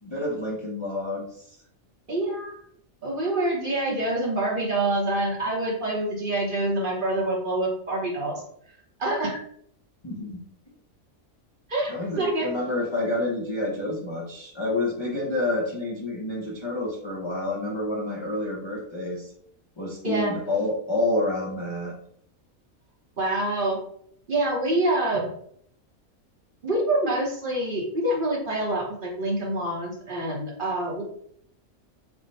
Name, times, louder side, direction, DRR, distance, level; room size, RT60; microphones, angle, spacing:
voice 1, 0.0-1.6 10.0-10.4 11.9-19.3 19.8-21.9, left 2 dB, 35° left, -5 dB, 0.5 m, -28 dB
voice 2, 2.1-2.5 3.0-8.4 9.0-9.4 11.7-12.5 20.0-20.3 23.2-23.8 24.3-25.3 26.6-31.0, right 1 dB, 45° right, -3 dB, 0.9 m, -26 dB
3.5 x 2.1 x 3.9 m, 0.66 s
omnidirectional pair, 1.5 m